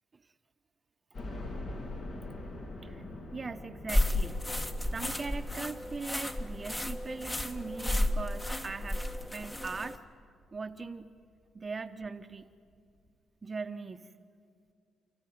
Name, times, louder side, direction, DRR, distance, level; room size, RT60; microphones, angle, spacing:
sound 1, 1.1-10.1 10.5-10.6 11.0-11.1 12.3-12.4 12.7-12.8, left 2 dB, 60° left, 3.5 m, -45 dB
voice 1, 3.3-4.5 4.9-9.1 9.3-10.0 10.5-11.1 11.5-12.5 13.4-14.1, right 4 dB, 30° right, 8 dB, 0.9 m, -40 dB
sound 2, 3.9-10.0, left 1 dB, 20° left, 1.3 m, -32 dB
29.0 x 15.0 x 9.4 m, 2.3 s
cardioid pair, 90°, 0 cm